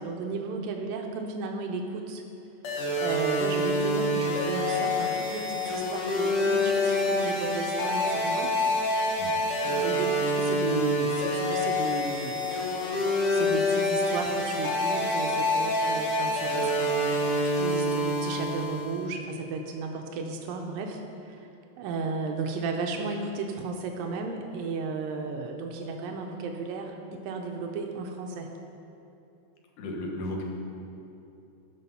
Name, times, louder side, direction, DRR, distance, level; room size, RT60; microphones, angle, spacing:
voice 1, 0.0-2.2 3.0-8.5 9.6-13.0 13.3-21.5 21.8-28.5, right 4 dB, 85° right, 3 dB, 1.9 m, -34 dB
sound 1, 2.6-19.1, left 1 dB, 85° left, 1.2 m, -27 dB
voice 2, 29.8-30.4, left 1 dB, 60° left, 0 dB, 2.2 m, -34 dB
13.5 x 7.8 x 5.5 m, 2.9 s
omnidirectional pair, 4.9 m